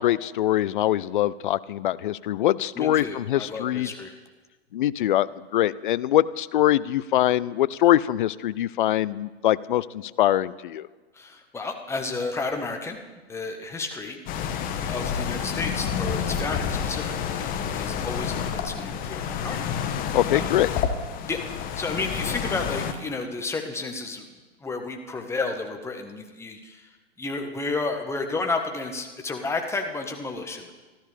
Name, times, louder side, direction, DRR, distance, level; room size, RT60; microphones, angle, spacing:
voice 1, 0.0-3.9 4.7-5.3 5.5-10.9 20.1-20.7, left 13 dB, 50° left, 18 dB, 0.5 m, -23 dB
voice 2, 2.7-4.2 11.1-13.0 13.3-14.2 14.9-20.0 20.3-20.5 21.2-24.3 24.6-30.7, left 3 dB, 10° left, 4 dB, 1.3 m, -32 dB
sound 1, 14.3-22.9, left 7 dB, 25° left, 1.2 m, -29 dB
24.5 x 13.0 x 3.4 m, 1.3 s
figure-of-eight pair, 110°, 34 cm